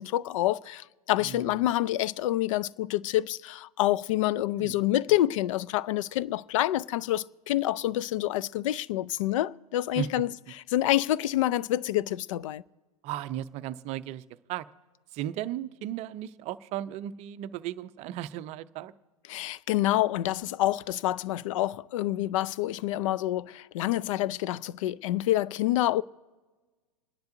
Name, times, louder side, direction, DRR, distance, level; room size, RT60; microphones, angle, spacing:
voice 1, 0.0-12.6 19.3-26.0, left 14 dB, 55° left, 0.4 m, -27 dB
voice 2, 1.2-1.7 4.6-4.8 10.0-10.1 13.0-14.2 14.5-14.7 15.1-18.9, right 12 dB, 35° right, 0.5 m, -35 dB
27.5 x 10.5 x 2.6 m
hypercardioid pair, 100°, 19 cm